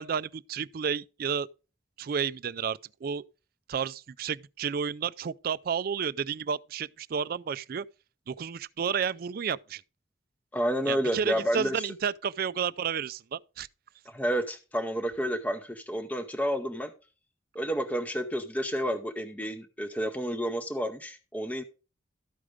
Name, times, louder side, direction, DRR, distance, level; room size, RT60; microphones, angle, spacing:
voice 1, 0.0-1.5 2.0-3.2 3.7-7.8 8.3-9.8 10.9-13.7, right 7 dB, 50° right, 0.4 m, -31 dB
voice 2, 10.5-11.9 14.1-16.9 17.5-21.6, equal, 10° left, 0.7 m, -30 dB
13.0 x 5.0 x 5.0 m
head